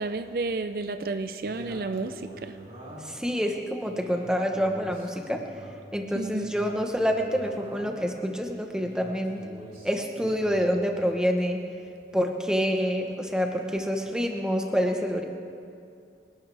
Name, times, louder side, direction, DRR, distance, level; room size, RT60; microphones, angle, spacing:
voice 1, 0.0-2.5 6.2-6.5, right 3 dB, 55° right, 9 dB, 0.5 m, -31 dB
Male speech man speaking, 1.4-3.2 3.8-5.8 6.3-8.0 8.7-10.7, equal, 35° right, 3.6 m, -45 dB
voice 2, 3.0-5.4 5.9-9.4 9.8-11.6 12.1-15.2, equal, 5° right, 3 dB, 1.0 m, -27 dB
27.0 x 12.0 x 3.4 m, 2.5 s
head